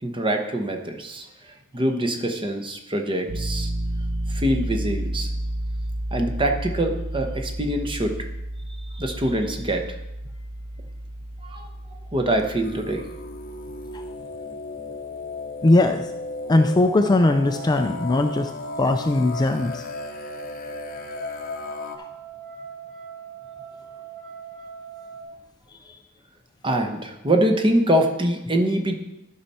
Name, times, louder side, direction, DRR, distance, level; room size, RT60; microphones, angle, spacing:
voice 1, 0.0-3.7 4.3-5.3 6.1-8.2 8.9-10.0 11.4-11.7 12.1-13.1 14.5-14.9 26.6-28.9, right 1 dB, 25° right, 4 dB, 0.9 m, -24 dB
Piano, 3.3-14.1, right 1 dB, 75° right, 1.1 m, -31 dB
sound 1, 12.6-22.0, left 3 dB, 40° left, 0.7 m, -35 dB
voice 2, 15.6-16.1 16.5-18.5 18.8-19.8 22.0-22.1, left 2 dB, 20° left, 7 dB, 0.3 m, -20 dB
sound 2, 17.0-25.2, right 5 dB, ahead, 2.3 m, -40 dB
12.5 x 5.6 x 4.2 m, 0.90 s
head